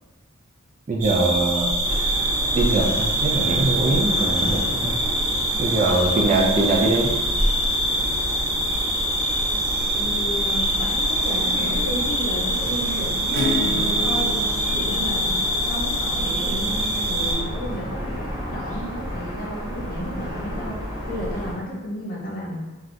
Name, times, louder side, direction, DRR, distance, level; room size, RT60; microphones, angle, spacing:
voice 1, 0.9-2.0 2.5-5.0 5.6-7.1, right 2 dB, 35° right, -1 dB, 0.4 m, -22 dB
sound 1, 1.0-17.3, right 1 dB, 90° right, 0.9 m, -24 dB
sound 2, 1.8-21.5, equal, 20° right, 0.8 m, -31 dB
voice 2, 9.9-14.4 14.7-22.6, equal, 45° left, -4 dB, 0.7 m, -32 dB
Acoustic guitar / Strum, 13.3-18.8, left 1 dB, 65° right, 1.2 m, -33 dB
3.1 x 2.4 x 2.5 m, 1.1 s
head